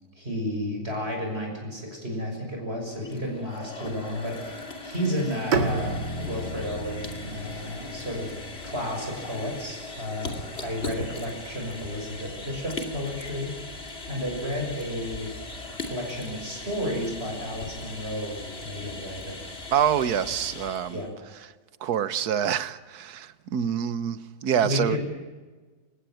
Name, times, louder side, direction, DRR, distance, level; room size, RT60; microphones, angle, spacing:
voice 1, 0.2-8.4 8.6-15.3 15.8-19.4 20.9-21.1 24.6-25.0, equal, 35° right, 6.7 m, -32 dB
sound 1, 2.9-21.1, left 2 dB, 35° left, 2.9 m, -39 dB
Bowed string instrument, 5.5-9.4, right 3 dB, 90° right, 2.7 m, -32 dB
voice 2, 19.7-21.0 21.8-25.0, right 8 dB, 65° right, 1.5 m, -26 dB
29.5 x 17.0 x 9.3 m
omnidirectional pair, 1.8 m